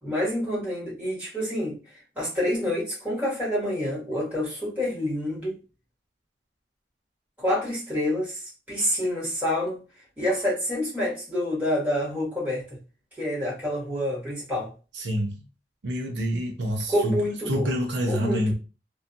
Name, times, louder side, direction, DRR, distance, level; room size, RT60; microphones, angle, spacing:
voice 1, 0.0-1.8 2.1-5.5 7.4-9.8 10.2-12.6 13.2-14.7 16.9-17.7 18.1-18.5, left 1 dB, 10° right, 1.4 m, -27 dB
voice 2, 14.9-15.4 15.8-17.1 17.5-18.5, equal, 85° right, 0.6 m, -27 dB
2.6 x 2.3 x 2.6 m
head